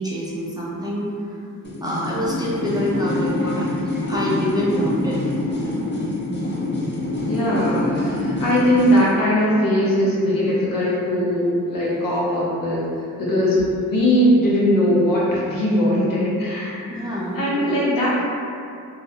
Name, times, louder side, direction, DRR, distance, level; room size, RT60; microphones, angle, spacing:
voice 1, 0.0-1.4 1.8-3.7 4.1-5.3 13.4-13.6 16.9-17.4, equal, 10° right, -7 dB, 0.4 m, -26 dB
sound 1, 1.6-9.1, left 1 dB, 30° left, 0.6 m, -26 dB
voice 2, 7.3-12.9 13.2-13.6 13.9-18.2, equal, 75° left, -7 dB, 0.7 m, -20 dB
2.3 x 2.0 x 2.7 m, 2.4 s
cardioid pair, 70°, 34 cm